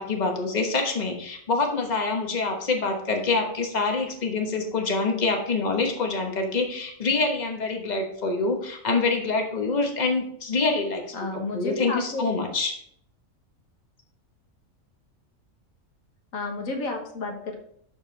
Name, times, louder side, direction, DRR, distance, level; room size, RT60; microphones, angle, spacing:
voice 1, 0.0-12.8, left 3 dB, 35° left, 3 dB, 1.2 m, -26 dB
voice 2, 11.1-12.2 16.3-17.6, left 3 dB, 85° left, 2 dB, 1.7 m, -31 dB
12.0 x 4.4 x 3.3 m, 0.66 s
omnidirectional pair, 1.4 m